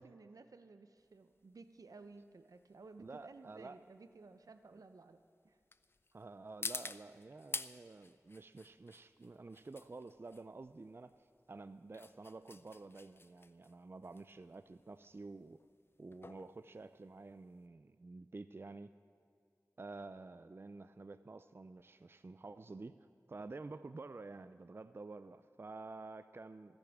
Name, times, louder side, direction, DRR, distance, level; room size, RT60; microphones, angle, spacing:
voice 1, 0.0-5.2 5.4-5.6, right 3 dB, 80° right, 9 dB, 0.7 m, -56 dB
sound 1, 1.0-17.7, left 3 dB, 40° left, 0.4 m, -50 dB
voice 2, 3.0-3.8 6.1-15.6 16.0-18.9 19.8-23.0 23.3-26.8, right 3 dB, 40° right, 12 dB, 0.4 m, -50 dB
27.5 x 10.5 x 3.6 m, 2.2 s
wide cardioid pair, 60°, 6 cm